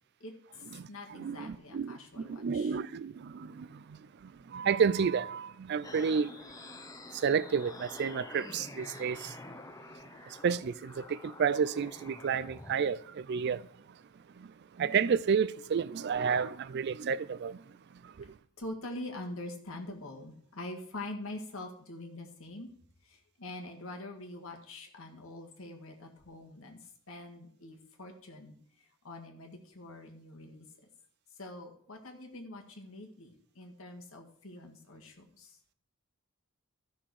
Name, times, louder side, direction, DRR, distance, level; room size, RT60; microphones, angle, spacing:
voice 1, 0.2-2.8 18.6-22.7 23.0-30.7 31.4-35.6, left 1 dB, 65° left, 1.9 m, -45 dB
voice 2, 0.8-3.7 4.5-6.3 7.2-9.3 10.4-13.6 14.8-17.6, right 6 dB, 50° right, 0.4 m, -30 dB
sound 1, 5.8-12.7, left 2 dB, 15° left, 0.7 m, -48 dB
14.0 x 6.2 x 4.8 m
head